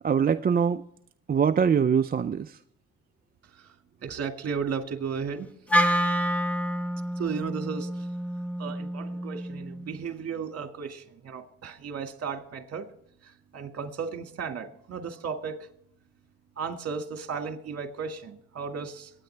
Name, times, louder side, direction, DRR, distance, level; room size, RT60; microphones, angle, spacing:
voice 1, 0.0-0.8 1.3-2.6, right 7 dB, 30° right, 0.5 m, -23 dB
voice 2, 4.0-5.5 7.2-8.1 8.6-12.9 13.2-15.7 16.6-19.1, right 6 dB, 55° right, 2.0 m, -35 dB
Wind instrument woodwind instrument, 5.7-10.0, equal, 5° left, 1.4 m, -28 dB
22.5 x 9.6 x 3.4 m
cardioid pair, 90°, 30 cm